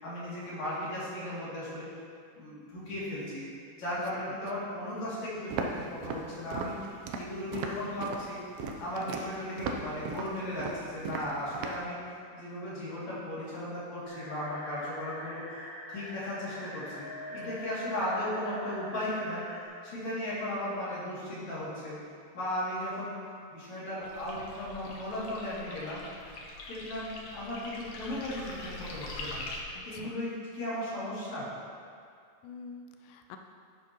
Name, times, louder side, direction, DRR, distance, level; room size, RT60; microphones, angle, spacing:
voice 1, 0.0-1.9 2.3-3.4 3.8-8.4 8.8-12.0 12.3-15.4 15.9-19.4 19.8-22.0 22.3-23.2 23.5-26.0 26.7-29.4 29.8-31.5, left 1 dB, 45° left, -9 dB, 3.8 m, -36 dB
Walk footsteps, 5.5-11.9, right 4 dB, 75° right, 2.3 m, -37 dB
sound 1, 14.0-19.6, equal, 35° right, 2.3 m, -43 dB
sound 2, 24.0-29.6, left 2 dB, 65° left, 1.7 m, -43 dB
voice 2, 29.7-30.1 32.4-33.4, left 5 dB, 85° left, 4 dB, 2.7 m, -47 dB
11.5 x 11.0 x 3.1 m, 2.3 s
omnidirectional pair, 4.8 m